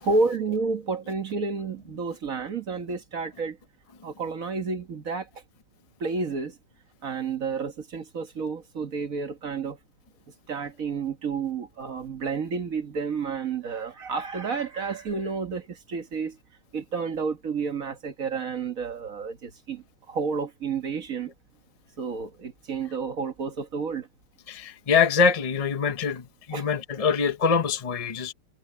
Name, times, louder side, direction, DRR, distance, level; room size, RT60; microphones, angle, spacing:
voice 1, 0.0-3.6 4.0-5.3 6.0-6.6 7.0-9.8 10.5-16.4 16.7-21.3 22.0-24.1 26.5-26.7, right 4 dB, 50° right, 1.8 m, -30 dB
voice 2, 24.5-26.2 26.5-28.3, left 5 dB, 40° left, 0.5 m, -24 dB
omnidirectional pair, 1.9 m